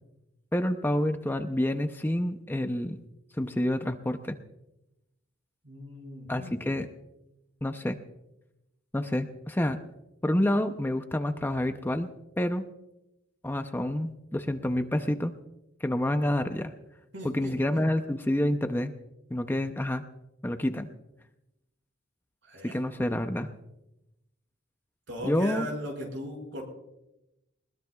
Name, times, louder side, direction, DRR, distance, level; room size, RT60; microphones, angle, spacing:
voice 1, 0.5-3.0 3.4-4.4 6.3-6.9 7.6-8.0 8.9-9.8 10.2-12.1 12.4-12.6 13.4-15.3 15.8-16.7 17.2-18.9 19.3-20.0 20.4-20.9 22.6-23.5 25.2-25.7, left 1 dB, 10° left, 7 dB, 0.6 m, -28 dB
voice 2, 5.6-6.5 17.1-17.8 22.4-22.9 25.1-26.6, equal, 70° right, 1 dB, 6.2 m, -38 dB
20.5 x 20.0 x 2.4 m, 0.92 s
head